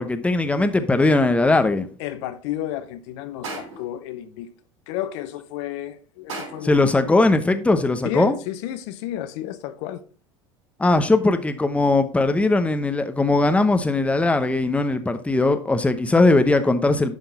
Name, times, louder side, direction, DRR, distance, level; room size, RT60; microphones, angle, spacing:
voice 1, 0.0-1.9 6.6-8.4 10.8-17.1, left 2 dB, 5° left, 0.8 m, -19 dB
voice 2, 2.0-4.5 4.9-7.1 8.0-10.0, left 12 dB, 60° left, 0.7 m, -32 dB
sound 1, 3.4-4.0 6.3-6.9, right 3 dB, 70° right, 4.2 m, -35 dB
11.0 x 3.8 x 4.1 m
hypercardioid pair, 85°, 17 cm